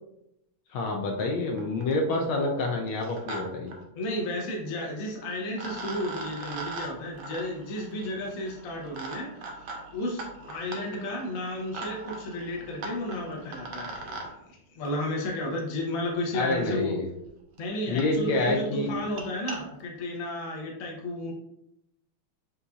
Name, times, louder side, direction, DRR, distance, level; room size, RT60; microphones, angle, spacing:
voice 1, 0.7-3.7 16.3-17.1 17.9-18.9, left 2 dB, 75° left, 2 dB, 1.3 m, -27 dB
sound 1, 1.2-1.3 1.6-2.0 2.9-3.4 3.7-3.8 5.1-5.2 5.6-14.3 15.6-15.7 16.5-16.6 17.3-17.4 17.6-17.7 18.0-18.1 18.4-18.6 19.0-19.6, right 3 dB, 80° right, 1.7 m, -40 dB
voice 2, 3.9-16.9 17.6-21.3, left 1 dB, 55° left, -1 dB, 1.0 m, -33 dB
6.8 x 2.6 x 2.3 m, 0.83 s
omnidirectional pair, 2.4 m